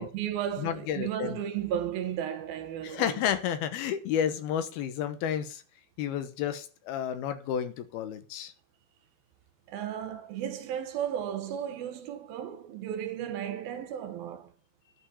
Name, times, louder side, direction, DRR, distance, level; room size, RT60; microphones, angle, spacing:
voice 1, 0.0-3.2 9.7-14.5, right 10 dB, 70° right, 2.7 m, -34 dB
voice 2, 0.6-1.4 2.8-5.6 6.0-8.5, left 9 dB, 75° left, 2.8 m, -31 dB
11.5 x 5.5 x 7.1 m
omnidirectional pair, 4.7 m